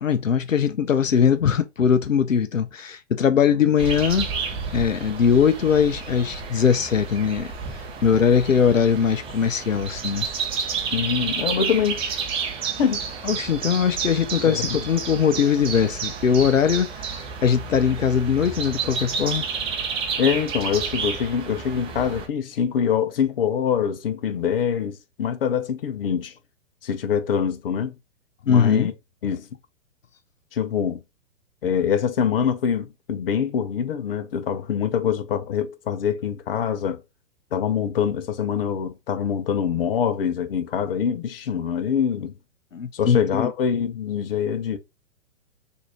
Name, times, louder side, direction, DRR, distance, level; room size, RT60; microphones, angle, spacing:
voice 1, 0.0-10.3 13.2-19.5 28.5-28.9 42.7-43.5, left 7 dB, 85° left, 0.5 m, -21 dB
sound 1, 3.8-22.3, right 5 dB, 15° right, 0.7 m, -31 dB
voice 2, 10.9-12.0 12.6-13.0 14.4-14.8 20.2-26.3 26.8-27.9 28.4-28.9 29.2-29.5 30.5-31.0 31.6-37.0 37.5-42.3 42.9-44.8, left 8 dB, 50° left, 0.8 m, -24 dB
6.2 x 2.7 x 2.9 m
figure-of-eight pair, 110°, 38 cm